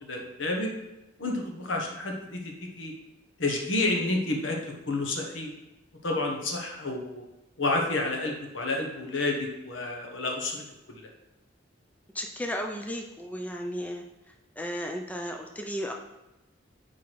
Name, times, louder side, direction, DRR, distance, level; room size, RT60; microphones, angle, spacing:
voice 1, 0.0-0.7 1.2-2.9 3.4-5.5 6.0-7.2 7.6-10.6 11.0-11.1, left 2 dB, 80° left, 1 dB, 1.2 m, -30 dB
voice 2, 12.1-14.0 14.6-15.9, equal, 10° left, 2 dB, 0.5 m, -34 dB
6.0 x 4.8 x 4.6 m, 0.95 s
head